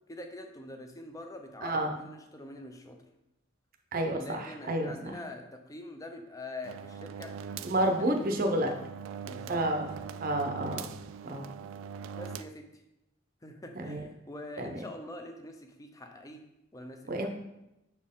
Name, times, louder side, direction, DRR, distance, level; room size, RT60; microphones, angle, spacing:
voice 1, 0.1-3.0 4.2-7.3 7.8-8.2 8.6-8.9 9.2-9.6 12.1-12.7 13.4-17.3, left 1 dB, 15° left, 4 dB, 0.6 m, -44 dB
voice 2, 1.6-1.9 3.9-5.2 7.6-8.7 9.5-9.9 10.2-10.9 11.2-11.5 13.8-14.0 14.6-14.8 17.1-17.3, right 1 dB, 45° right, 4 dB, 0.7 m, -30 dB
sound 1, 6.6-12.4, right 6 dB, 75° right, 0.3 m, -42 dB
6.1 x 4.3 x 3.6 m, 0.90 s
head